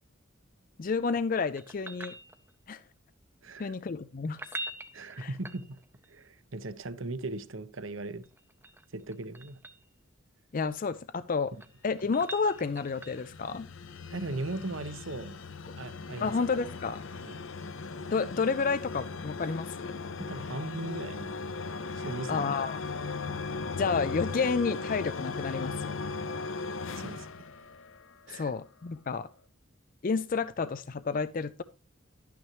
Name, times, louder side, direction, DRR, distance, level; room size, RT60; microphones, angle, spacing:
voice 1, 0.8-2.1 2.7-2.8 3.6-4.4 5.2-5.3 10.5-11.5 11.8-13.7 16.2-17.0 18.1-19.9 22.3-22.8 23.8-25.9 28.3-29.3 30.0-31.6, left 4 dB, 40° left, 0.4 m, -30 dB
sound 1, 1.6-2.8 4.3-6.1 8.2-9.9 11.3-13.4 16.1-16.2, right 2 dB, 10° right, 0.6 m, -44 dB
voice 2, 3.4-3.7 4.9-5.8 6.1-8.2 8.9-9.6 14.1-15.4 15.8-16.3 17.1-17.4 20.2-21.3 22.0-22.5 27.0-27.3 28.3-28.5, right 2 dB, 70° right, 0.9 m, -38 dB
sound 2, 12.2-28.3, left 4 dB, 70° left, 0.8 m, -38 dB
12.0 x 9.3 x 3.1 m
head